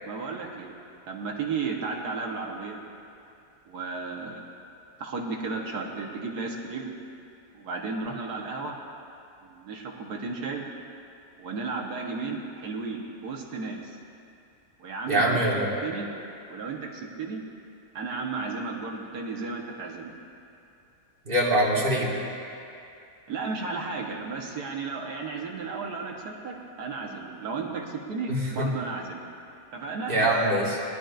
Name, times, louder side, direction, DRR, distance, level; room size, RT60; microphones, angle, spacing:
voice 1, 0.0-0.7 1.1-2.8 3.7-4.4 5.0-6.9 7.5-8.8 9.4-10.7 11.4-14.0 14.8-15.4 15.8-16.1 16.5-17.4 17.9-20.1 23.3-29.2 29.7-30.1, right 4 dB, 75° right, 0 dB, 1.7 m, -34 dB
voice 2, 15.1-15.7 21.3-22.1 28.3-28.7 30.1-30.8, right 1 dB, 35° right, -5 dB, 2.1 m, -23 dB
19.5 x 11.5 x 2.6 m, 2.5 s
omnidirectional pair, 1.7 m